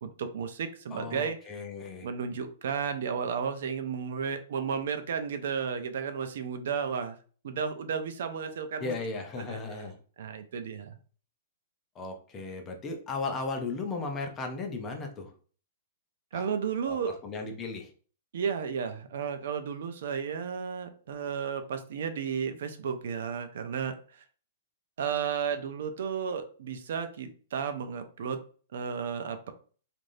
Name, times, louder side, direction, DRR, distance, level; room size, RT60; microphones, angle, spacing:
voice 1, 0.0-1.4 2.0-7.2 7.4-8.9 9.5-9.6 10.2-10.9 16.3-17.2 18.3-24.2 25.0-28.4 28.7-29.5, right 6 dB, 70° right, 8 dB, 0.5 m, -33 dB
voice 2, 0.9-2.1 8.8-10.0 11.9-15.3 16.3-16.4 16.8-17.0 17.2-17.9, left 3 dB, 20° left, 3 dB, 0.6 m, -36 dB
3.2 x 2.5 x 2.6 m, 0.41 s
hypercardioid pair, 155°, 0 cm